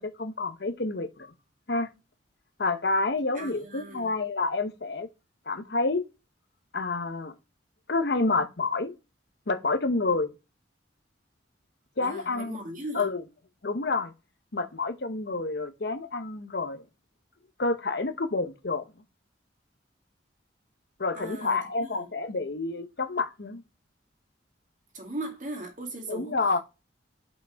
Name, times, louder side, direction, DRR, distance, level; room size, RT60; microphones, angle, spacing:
voice 1, 0.0-1.3 1.7-1.9 2.6-5.1 5.5-6.0 6.7-7.3 7.9-8.9 9.5-10.3 12.0-12.6 12.9-13.2 13.6-14.1 14.5-16.8 17.6-18.8 21.0-23.6 26.1-26.6, left 3 dB, 60° left, 0.9 m, -28 dB
voice 2, 3.3-4.1 12.0-13.1 21.1-22.1 24.9-26.4, right 1 dB, 40° right, 2.3 m, -38 dB
5.8 x 5.3 x 4.6 m
head